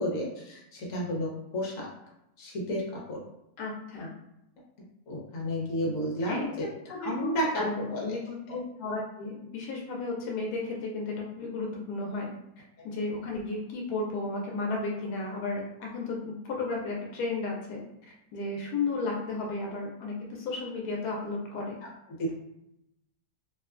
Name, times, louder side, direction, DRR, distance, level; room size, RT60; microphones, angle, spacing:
voice 1, 0.0-1.9 2.4-3.2 5.1-6.6 7.0-7.6 7.9-8.2 12.8-12.9 22.2-22.3, equal, 60° left, -3 dB, 1.2 m, -31 dB
voice 2, 3.6-4.1 6.3-6.5 6.9-7.3 7.6-12.3 12.8-17.8 18.3-21.8, left 3 dB, 85° left, -1 dB, 1.1 m, -33 dB
2.8 x 2.2 x 2.3 m, 0.84 s
omnidirectional pair, 1.6 m